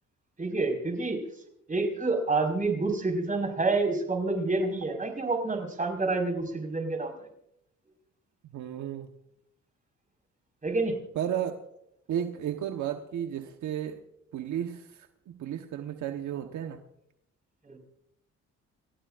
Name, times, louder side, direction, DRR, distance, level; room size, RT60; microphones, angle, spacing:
voice 1, 0.4-1.2 1.7-7.3 10.6-10.9 17.6-17.8, right 3 dB, 25° right, 5.0 m, -28 dB
voice 2, 8.5-9.1 11.1-11.5 12.1-14.0 14.3-16.8, right 10 dB, 75° right, 1.2 m, -33 dB
30.0 x 15.0 x 2.5 m
cardioid pair, 90°, 30 cm